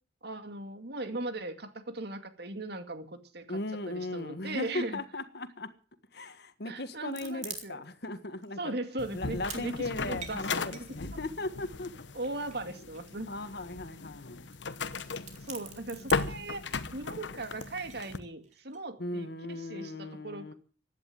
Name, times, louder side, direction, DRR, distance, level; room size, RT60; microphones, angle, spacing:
voice 1, 0.2-3.6 3.9-5.0 6.7-7.8 8.6-11.0 12.1-13.3 15.4-20.5, right 2 dB, 60° right, 2.2 m, -39 dB
voice 2, 3.5-5.7 6.1-8.7 9.1-11.9 13.3-14.4 19.0-20.5, left 2 dB, 60° left, 1.6 m, -37 dB
sound 1, 6.9-8.1 8.4-8.5 9.0-9.6 9.9-11.5 12.2-13.3 13.6-13.7 13.9-14.1 14.5-14.6 14.9-16.4 17.4-18.8, right 7 dB, 40° right, 3.3 m, -45 dB
sound 2, 9.0-18.2, left 4 dB, 80° left, 1.0 m, -37 dB
16.0 x 10.5 x 7.7 m
head